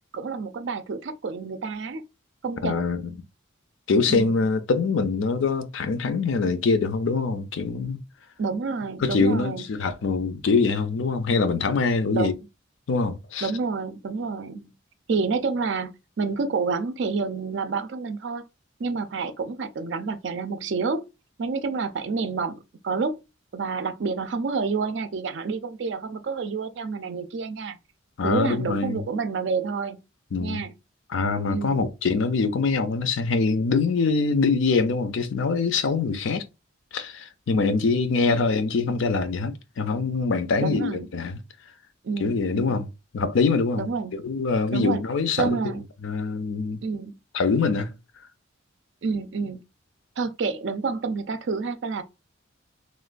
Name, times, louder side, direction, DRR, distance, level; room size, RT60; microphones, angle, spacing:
voice 1, 0.1-2.0 2.4-2.9 4.1-4.4 8.4-9.6 12.1-12.3 13.4-14.7 15.1-18.4 18.8-21.1 21.4-23.2 23.5-27.8 28.2-30.0 30.4-30.7 31.5-31.8 38.3-38.4 40.6-41.1 42.0-42.9 43.8-44.2 44.7-45.0 45.4-45.8 46.8-47.2 49.0-49.6 50.2-52.0, right 4 dB, 65° right, 0.4 m, -29 dB
voice 2, 2.6-3.1 3.9-8.0 9.0-12.3 12.9-13.5 28.2-29.0 30.3-30.6 31.1-36.5 36.9-41.3 42.2-42.9 43.1-43.9 44.2-45.6 46.0-46.8 47.3-47.9, left 4 dB, 75° left, 0.4 m, -24 dB
3.0 x 2.2 x 2.4 m
head